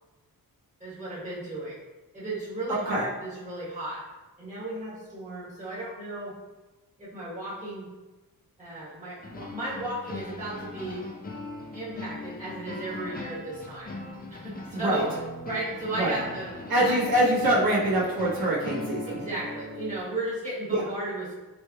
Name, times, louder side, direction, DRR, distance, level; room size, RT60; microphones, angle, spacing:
voice 1, 0.8-1.8 2.1-4.0 4.4-6.3 7.0-7.9 8.6-11.0 11.7-13.9 14.3-15.1 15.5-16.5 16.9-17.0 19.1-21.3, right 2 dB, 20° right, -10 dB, 1.3 m, -35 dB
sound 1, 9.2-20.0, left 2 dB, 25° left, 0.4 m, -39 dB
voice 2, 16.7-19.2 20.7-20.8, right 1 dB, 75° right, -7 dB, 1.0 m, -24 dB
4.3 x 3.2 x 2.3 m, 1.2 s
wide cardioid pair, 175°, 36 cm